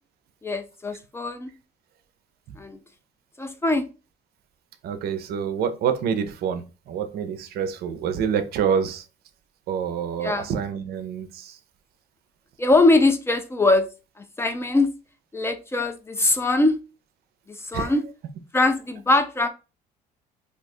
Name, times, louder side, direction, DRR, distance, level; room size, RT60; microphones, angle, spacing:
voice 1, 0.4-1.5 2.6-2.8 3.4-3.9 10.2-10.5 12.6-13.9 14.2-14.9 15.3-16.8 17.5-18.0 18.5-19.5, left 2 dB, 15° left, 9 dB, 0.4 m, -22 dB
voice 2, 4.8-9.0 9.7-11.6 17.7-17.9, right 7 dB, 70° right, 10 dB, 0.5 m, -27 dB
2.7 x 2.3 x 4.2 m, 0.31 s
cardioid pair, 110°, 17 cm